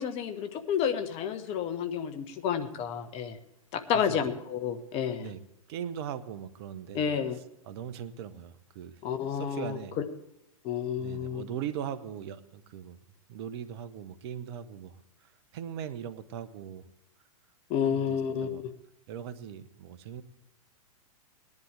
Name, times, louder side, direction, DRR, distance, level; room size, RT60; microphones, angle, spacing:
voice 1, 0.0-3.4 3.7-5.3 6.9-7.4 9.0-9.8 10.6-11.4 17.7-18.7, left 8 dB, 35° left, 9 dB, 1.3 m, -30 dB
voice 2, 5.7-7.1 7.6-9.0 9.3-10.0 11.0-13.0 13.3-16.9 17.8-18.6 19.1-20.2, right 9 dB, 50° right, 12 dB, 1.0 m, -40 dB
19.0 x 10.5 x 3.4 m, 0.84 s
figure-of-eight pair, 100°, 18 cm